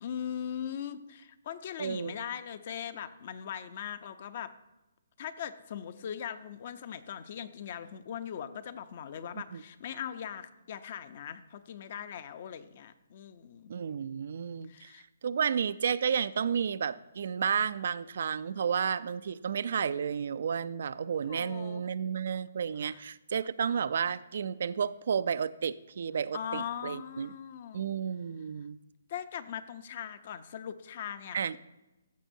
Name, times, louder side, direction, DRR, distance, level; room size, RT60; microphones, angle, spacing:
voice 1, 0.0-4.5 5.2-13.7 14.7-15.0 21.3-21.8 22.8-23.0 26.3-27.8 29.1-31.6, left 9 dB, 45° left, 12 dB, 0.6 m, -40 dB
voice 2, 1.8-2.1 9.5-9.6 13.7-14.9 15.2-27.3 27.7-28.8 31.3-31.5, right 7 dB, 60° right, 16 dB, 0.3 m, -32 dB
14.5 x 6.1 x 2.7 m, 1.0 s
hypercardioid pair, 155°, 0 cm